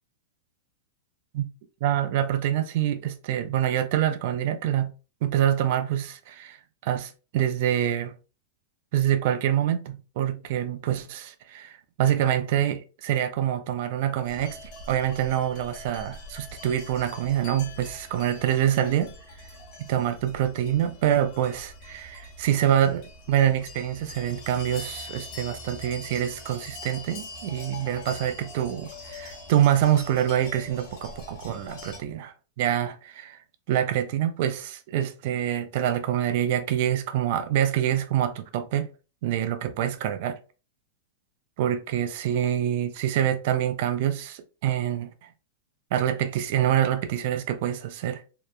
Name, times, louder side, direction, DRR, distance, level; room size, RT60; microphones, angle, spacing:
voice 1, 1.8-4.9 5.2-8.1 8.9-14.6 14.9-19.5 19.8-33.4 33.7-38.9 39.2-40.4 41.6-45.3 45.9-48.2, right 11 dB, 60° right, 0.3 m, -26 dB
sound 1, 14.2-32.0, left 2 dB, 55° left, 1.1 m, -43 dB
2.8 x 2.1 x 2.3 m
hypercardioid pair, 120°, 0 cm